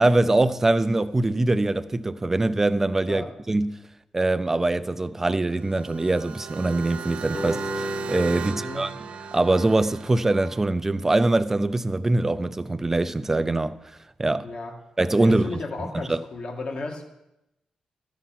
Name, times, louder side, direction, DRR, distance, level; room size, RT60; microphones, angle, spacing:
voice 1, 0.0-3.8 4.1-8.9 9.3-13.8 14.2-14.5 15.0-15.5 16.1-16.2, right 2 dB, 20° right, 0.4 m, -23 dB
sound 1, 5.5-10.6, right 7 dB, 80° right, 0.4 m, -37 dB
sound 2, 7.3-10.5, left 3 dB, 30° left, 0.6 m, -38 dB
voice 2, 8.4-8.9 14.4-14.7 15.2-17.0, left 3 dB, 60° left, 1.9 m, -34 dB
13.5 x 5.6 x 5.8 m
wide cardioid pair, 125°, 2 cm